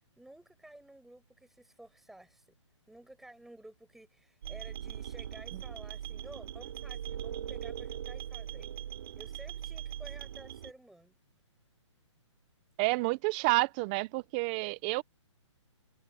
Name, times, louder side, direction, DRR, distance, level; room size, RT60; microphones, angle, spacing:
voice 1, 0.2-2.5 2.9-8.7 9.2-11.1, right 1 dB, ahead, 7.5 m, -53 dB
sound 1, 4.4-10.7, right 10 dB, 55° right, 2.7 m, -40 dB
voice 2, 12.8-15.0, right 24 dB, 20° right, 0.5 m, -29 dB
hypercardioid pair, 160°, 16 cm